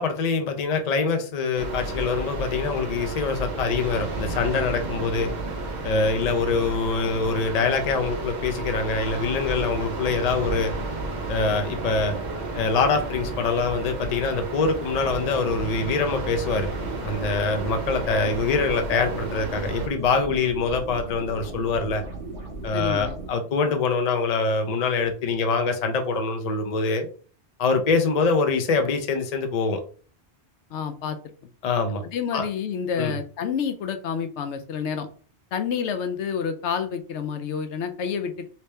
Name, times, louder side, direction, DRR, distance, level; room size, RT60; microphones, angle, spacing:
voice 1, 0.0-5.3 5.8-10.7 11.3-12.2 12.5-16.7 17.0-22.0 22.6-27.1 27.6-29.8 31.6-32.0 32.3-32.4 33.0-33.1, left 4 dB, 45° left, 6 dB, 0.6 m, -24 dB
sound 1, 1.6-19.9, right 3 dB, 45° right, 0.9 m, -32 dB
sound 2, 16.0-23.3, right 2 dB, 70° right, 1.6 m, -37 dB
voice 2, 22.7-23.2 30.7-31.2 32.1-35.1 35.5-38.5, left 7 dB, 80° left, 8 dB, 0.9 m, -29 dB
3.3 x 2.9 x 3.2 m, 0.40 s
omnidirectional pair, 1.2 m